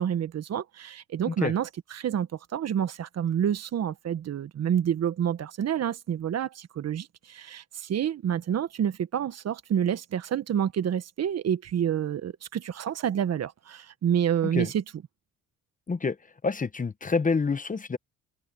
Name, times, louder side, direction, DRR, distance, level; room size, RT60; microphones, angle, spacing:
voice 1, 0.0-14.8, right 9 dB, 60° right, 1.5 m, -28 dB
voice 2, 16.4-18.0, left 4 dB, 25° left, 1.2 m, -27 dB
supercardioid pair, 75°, 30 cm